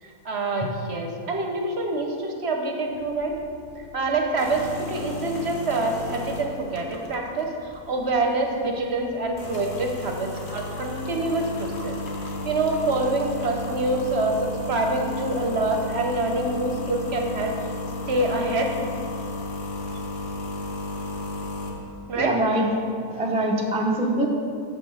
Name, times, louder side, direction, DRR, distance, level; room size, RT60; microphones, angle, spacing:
voice 1, 0.0-3.3 3.7-12.0 12.4-17.7 18.1-18.7 22.1-22.3, right 2 dB, 50° right, 2 dB, 0.9 m, -26 dB
sound 1, 2.9-22.0, left 2 dB, 40° left, 1.0 m, -34 dB
voice 2, 22.1-22.7 23.1-24.3, right 1 dB, 10° right, -1 dB, 0.4 m, -23 dB
7.0 x 5.9 x 6.3 m, 2.4 s
omnidirectional pair, 1.6 m